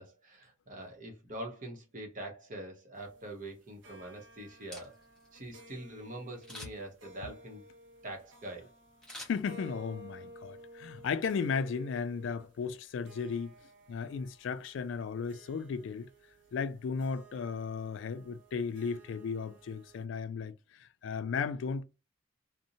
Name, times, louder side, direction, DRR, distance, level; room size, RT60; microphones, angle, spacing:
voice 1, 0.0-4.9 5.3-7.6 8.0-8.7, right 1 dB, 40° right, 0.9 m, -44 dB
sound 1, 2.9-20.0, right 1 dB, 70° right, 0.7 m, -55 dB
Camera, 4.5-5.3 6.4-7.0 9.0-10.0 10.4-10.5, left 1 dB, 5° left, 1.0 m, -48 dB
voice 2, 9.2-13.5 13.9-16.1 16.5-21.8, left 5 dB, 70° left, 0.3 m, -35 dB
2.6 x 2.1 x 2.7 m
head